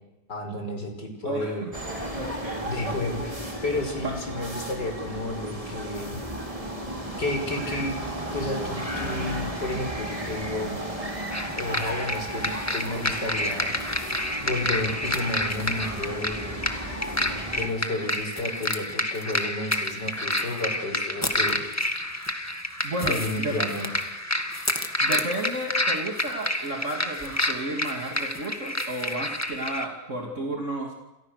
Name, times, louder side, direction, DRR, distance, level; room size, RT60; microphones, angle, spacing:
voice 1, 0.3-1.7 2.6-3.4 3.6-6.2 7.2-8.0 8.3-11.2 11.6-14.1 14.4-16.7 17.6-21.7 23.0-23.9, left 2 dB, 75° left, 5 dB, 6.3 m, -32 dB
voice 2, 1.2-1.7 2.1-2.6 4.0-4.1 22.8-23.6 25.0-30.9, right 1 dB, 45° right, 1 dB, 3.0 m, -32 dB
sound 1, 1.7-17.7, right 1 dB, 20° right, 4.1 m, -34 dB
sound 2, 11.3-29.9, left 1 dB, 10° left, 1.9 m, -29 dB
29.0 x 28.0 x 6.7 m, 1.0 s
omnidirectional pair, 1.9 m